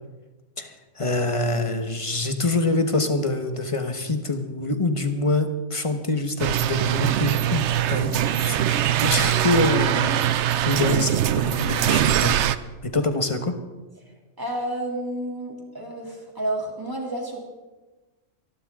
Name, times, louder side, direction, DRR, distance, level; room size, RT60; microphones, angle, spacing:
voice 1, 0.6-12.4 12.8-13.5, left 2 dB, 25° left, 6 dB, 1.2 m, -25 dB
sound 1, 6.4-12.6, right 11 dB, 65° right, 0.9 m, -22 dB
voice 2, 14.4-17.4, right 1 dB, 15° right, -1 dB, 2.8 m, -30 dB
27.0 x 11.5 x 3.7 m, 1.2 s
omnidirectional pair, 1.3 m